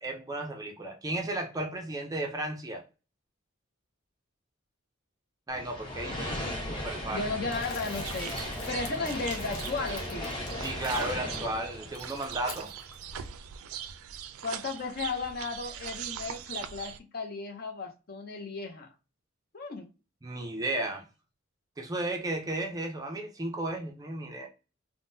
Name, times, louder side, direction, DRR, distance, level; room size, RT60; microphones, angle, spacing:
voice 1, 0.0-2.8 5.5-7.2 10.6-12.7 20.2-21.0 21.8-24.5, right 2 dB, 15° right, 0.4 m, -34 dB
sound 1, 5.5-12.9, left 1 dB, 25° left, 0.8 m, -37 dB
voice 2, 7.1-10.3 14.4-18.9 19.5-19.9, left 4 dB, 45° left, 0.5 m, -35 dB
Crumpling crinkling, 7.5-11.3 11.8-13.0, left 4 dB, 85° left, 0.8 m, -47 dB
sound 2, 8.0-17.0, right 9 dB, 90° right, 0.3 m, -41 dB
3.5 x 2.0 x 2.6 m
head